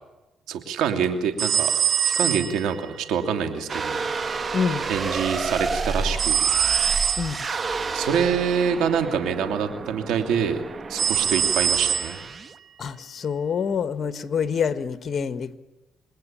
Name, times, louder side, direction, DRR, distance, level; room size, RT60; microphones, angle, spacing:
voice 1, 0.5-1.7 2.0-4.4 4.9-6.4 7.9-10.6 10.9-12.2, right 7 dB, 90° right, 2.6 m, -26 dB
sound 1, 1.4-3.0 6.2-7.4 11.0-12.3, right 8 dB, 65° right, 1.6 m, -23 dB
sound 2, 3.7-12.6, right 4 dB, 40° right, 1.0 m, -30 dB
voice 2, 4.5-4.9 7.2-7.4 12.8-15.5, left 6 dB, 50° left, 1.4 m, -26 dB
28.0 x 21.0 x 8.8 m
cardioid pair, 90°, 0 cm